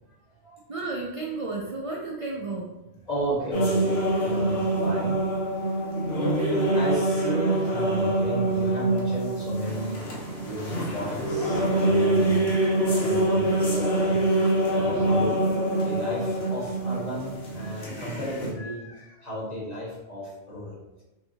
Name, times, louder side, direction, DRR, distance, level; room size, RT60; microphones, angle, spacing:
voice 1, 0.4-2.7, right 3 dB, 45° right, -2 dB, 0.4 m, -33 dB
voice 2, 3.1-5.2 6.2-10.0 10.3-12.5 12.8-15.3 15.8-20.8, right 1 dB, 35° left, -6 dB, 1.4 m, -34 dB
sound 1, 3.5-18.5, right 1 dB, 65° left, 1.2 m, -25 dB
5.8 x 2.8 x 2.8 m, 1.0 s
omnidirectional pair, 1.2 m